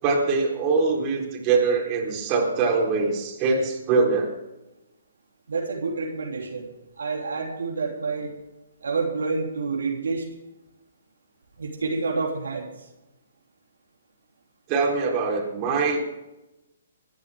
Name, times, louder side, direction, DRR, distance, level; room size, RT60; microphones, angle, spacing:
voice 1, 0.0-4.3 14.7-16.0, right 4 dB, 30° right, 0 dB, 4.2 m, -23 dB
voice 2, 5.5-8.3 8.8-10.2 11.6-12.7, right 4 dB, 80° right, 0 dB, 3.1 m, -28 dB
25.0 x 10.5 x 3.7 m, 0.96 s
hypercardioid pair, 135°, 0 cm